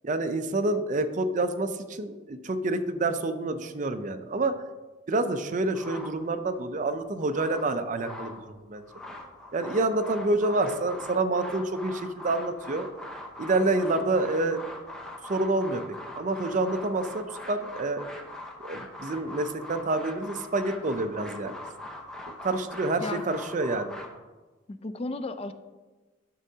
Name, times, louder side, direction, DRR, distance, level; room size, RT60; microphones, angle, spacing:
voice 1, 0.0-4.6 5.1-8.8 9.5-12.9 13.4-14.6 15.2-15.8 16.2-18.0 18.6-21.5 22.4-23.9, right 2 dB, 40° right, 9 dB, 0.5 m, -28 dB
sound 1, 5.7-6.6 7.0-8.4 8.8-24.1, left 1 dB, 5° left, 0.9 m, -42 dB
voice 2, 24.7-25.5, left 2 dB, 30° left, 11 dB, 0.4 m, -34 dB
11.0 x 6.2 x 2.8 m, 1.2 s
head